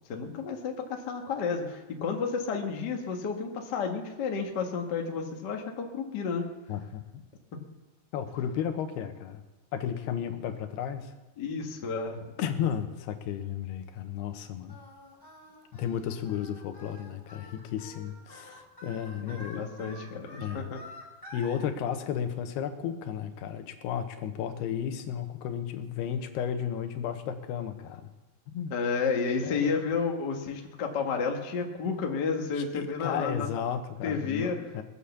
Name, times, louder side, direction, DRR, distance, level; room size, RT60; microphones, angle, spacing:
voice 1, 0.1-6.5 11.4-12.3 19.2-20.8 28.7-33.5 34.0-34.6, left 5 dB, 50° left, 2 dB, 1.2 m, -31 dB
voice 2, 6.7-7.2 8.1-9.4 9.7-11.1 12.4-14.8 15.7-19.6 20.4-20.7 21.3-28.1 28.5-28.7 29.4-29.8 32.6-34.8, left 8 dB, 85° left, 7 dB, 3.1 m, -33 dB
Singing, 14.7-21.6, left 1 dB, 5° left, 3.6 m, -48 dB
20.5 x 8.3 x 7.2 m, 1.1 s
omnidirectional pair, 4.5 m